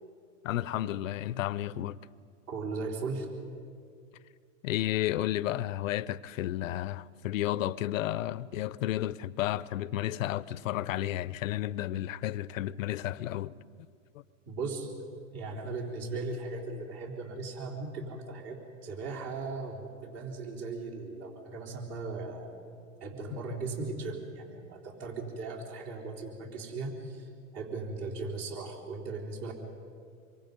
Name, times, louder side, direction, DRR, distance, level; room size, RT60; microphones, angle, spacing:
voice 1, 0.4-2.0 4.6-13.5 23.3-23.4, left 13 dB, 70° left, 0.8 m, -32 dB
voice 2, 2.5-3.3 14.5-14.9 15.3-22.6 23.0-29.5, right 3 dB, 40° right, 3.8 m, -38 dB
26.5 x 23.0 x 5.4 m
hypercardioid pair, 125°, 41 cm